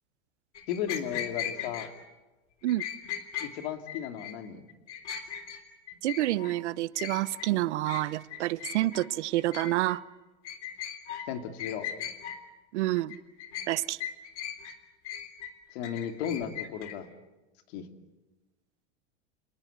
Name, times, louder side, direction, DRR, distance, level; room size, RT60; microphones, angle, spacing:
sound 1, 0.5-1.9 2.7-3.5 3.9-4.3 4.7-5.6 5.9-6.5 6.9-7.5 7.9-8.0 8.3-9.1 9.4-10.0 10.4-11.3 11.6-12.4 13.0-13.7 14.0-14.7 15.0-16.9, left 10 dB, 85° left, 3.5 m, -38 dB
voice 1, 0.7-1.9 3.4-4.6 11.3-11.9 15.7-17.1 17.7-17.9, left 9 dB, 65° left, 6 dB, 2.9 m, -35 dB
voice 2, 6.0-10.0 12.7-13.2 13.7-14.0, right 16 dB, 85° right, 18 dB, 0.9 m, -28 dB
29.5 x 19.5 x 8.3 m, 1.1 s
supercardioid pair, 140°, 34 cm